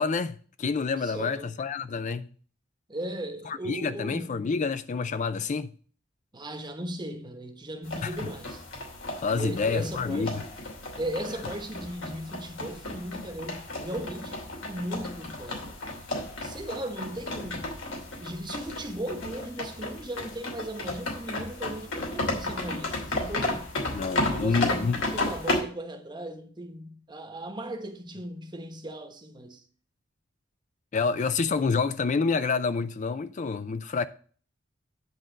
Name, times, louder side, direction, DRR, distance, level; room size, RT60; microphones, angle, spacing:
voice 1, 0.0-2.3 3.5-5.7 8.0-8.2 9.2-10.4 23.9-25.0 30.9-34.1, left 4 dB, 40° left, 0.4 m, -28 dB
voice 2, 1.0-1.5 2.9-4.7 6.3-8.6 9.3-10.4 11.0-15.8 16.4-17.7 18.2-23.7 24.2-29.6, right 1 dB, 25° right, 1.1 m, -37 dB
sound 1, 7.8-25.6, left 2 dB, 75° left, 2.8 m, -33 dB
10.0 x 3.8 x 7.4 m
head